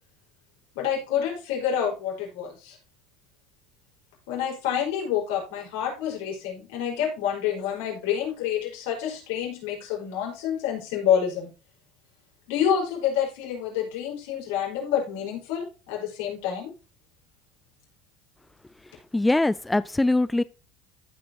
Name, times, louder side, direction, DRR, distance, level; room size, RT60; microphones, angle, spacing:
voice 1, 0.7-2.8 4.3-11.5 12.5-16.7, left 9 dB, 80° left, 5.1 m, -28 dB
voice 2, 19.1-20.4, left 2 dB, 10° left, 0.3 m, -22 dB
15.0 x 5.2 x 2.9 m
supercardioid pair, 120°, 0 cm